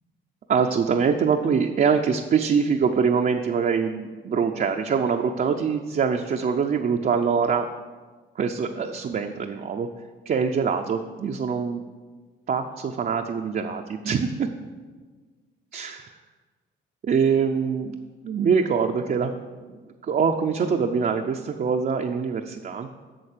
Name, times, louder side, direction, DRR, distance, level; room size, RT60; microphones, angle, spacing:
voice 1, 0.5-7.7 8.4-9.9 10.3-11.8 12.5-14.5 15.7-16.1 17.0-17.9 18.2-19.3 20.0-22.9, right 6 dB, 45° right, 3 dB, 0.6 m, -24 dB
8.7 x 6.5 x 6.7 m, 1.4 s
cardioid pair, 90°, 20 cm